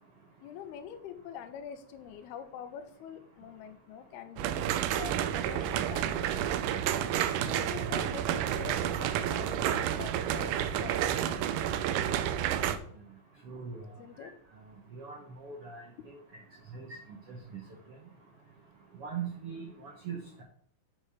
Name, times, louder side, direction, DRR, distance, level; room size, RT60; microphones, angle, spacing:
voice 1, 0.4-6.8 7.4-11.6 14.0-14.3, left 8 dB, 90° left, 8 dB, 2.8 m, -45 dB
sound 1, 4.4-12.8, right 10 dB, 85° right, 1.8 m, -30 dB
voice 2, 13.4-13.8 14.2-14.3 14.9-15.8 16.7-16.9 17.3-17.6 19.0-20.4, right 6 dB, 70° right, -1 dB, 1.4 m, -40 dB
8.1 x 5.8 x 4.9 m, 0.62 s
omnidirectional pair, 4.4 m